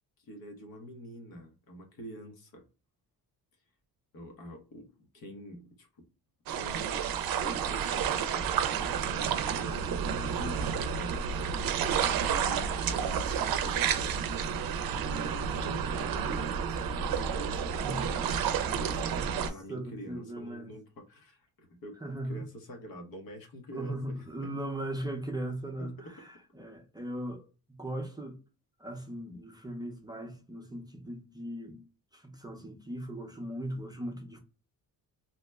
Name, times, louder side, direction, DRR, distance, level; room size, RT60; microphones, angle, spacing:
voice 1, 0.2-2.6 4.1-6.1 6.5-12.0 12.3-14.4 15.0-22.0 22.2-24.0 24.5-24.6 25.8-26.1, equal, 70° left, 1.0 m, -46 dB
sound 1, 6.5-19.5, right 7 dB, 70° right, 0.5 m, -30 dB
voice 2, 10.4-10.7 15.7-15.8 17.8-18.0 19.7-20.8 22.0-22.4 23.7-28.4 28.8-31.8 32.1-34.4, right 1 dB, 10° right, 0.5 m, -38 dB
2.8 x 2.1 x 3.4 m
cardioid pair, 135°, 36 cm